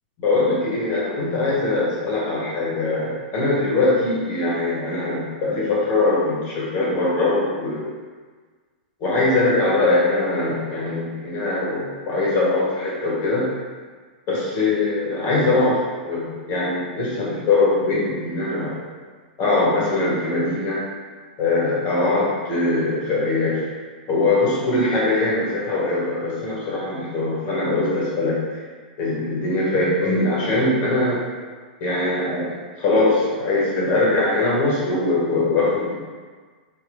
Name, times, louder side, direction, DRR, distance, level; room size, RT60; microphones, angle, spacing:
voice 1, 0.2-7.9 9.0-13.5 14.3-18.8 19.4-20.8 21.4-23.6 24.1-28.4 29.0-31.2 31.8-35.9, left 2 dB, 40° left, -6 dB, 1.2 m, -22 dB
3.0 x 2.6 x 2.6 m, 1.5 s
hypercardioid pair, 105°, 5 cm